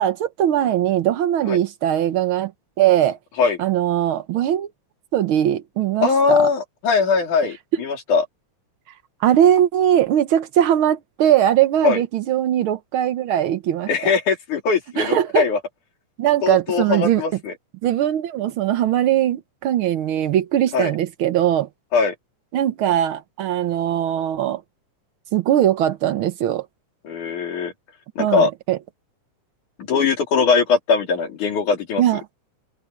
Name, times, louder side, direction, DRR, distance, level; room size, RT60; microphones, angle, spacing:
voice 1, 0.0-2.5 2.8-3.2 3.6-4.7 5.1-6.5 9.2-13.9 15.0-15.4 16.2-17.2 17.8-21.7 22.5-24.6 25.3-26.7 28.2-28.8 32.0-32.2, right 11 dB, 80° right, 1.1 m, -20 dB
voice 2, 6.0-8.2 11.8-12.0 13.9-15.6 16.4-17.5 20.7-20.9 21.9-22.1 27.0-27.7 28.2-28.5 29.9-32.0, left 5 dB, 75° left, 4.9 m, -20 dB
omnidirectional pair, 3.6 m